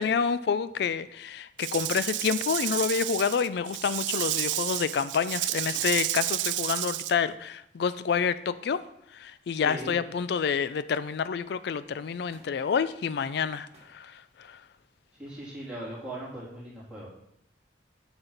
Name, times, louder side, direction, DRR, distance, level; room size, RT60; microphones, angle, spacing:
voice 1, 0.0-8.8 9.1-14.6, left 6 dB, 65° left, 15 dB, 0.3 m, -28 dB
Rattle / Rattle (instrument), 1.6-7.1, right 16 dB, 80° right, 0.3 m, -31 dB
Thump thud, 2.7-3.2 4.2-4.5 5.6-6.0 7.2-7.5 9.7-10.0 10.4-11.0 12.3-12.6 13.7-14.0 14.9-15.4 16.4-16.5, right 2 dB, 35° right, 1.8 m, -56 dB
voice 2, 9.5-10.0 15.2-17.1, right 1 dB, 5° right, -8 dB, 3.3 m, -39 dB
8.9 x 6.1 x 4.0 m, 0.77 s
head